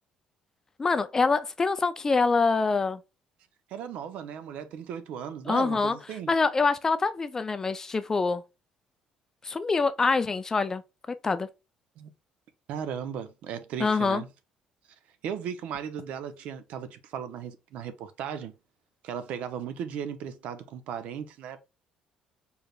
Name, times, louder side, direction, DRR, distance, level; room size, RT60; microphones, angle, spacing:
voice 1, 0.8-3.0 5.5-6.0 6.3-8.4 9.4-10.8 11.2-11.5 13.8-14.2, left 4 dB, 20° left, 0.4 m, -25 dB
voice 2, 3.7-6.3 12.0-12.1 12.7-14.3 15.2-18.5 19.0-21.6, right 8 dB, 70° right, 0.8 m, -36 dB
4.7 x 3.3 x 2.4 m
cardioid pair, 135°, 2 cm